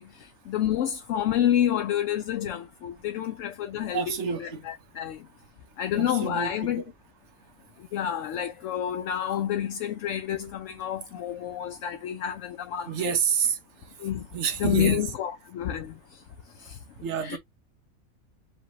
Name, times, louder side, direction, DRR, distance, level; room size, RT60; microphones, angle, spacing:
voice 1, 0.0-5.3 5.8-6.8 7.9-13.2 14.0-14.3 14.6-16.2 16.6-16.8 17.2-17.4, left 10 dB, 70° left, 0.9 m, -29 dB
voice 2, 3.9-4.6 5.9-6.7 12.8-13.6 14.3-15.1 17.0-17.4, right 7 dB, 60° right, 1.1 m, -28 dB
5.1 x 2.8 x 3.0 m
omnidirectional pair, 1.5 m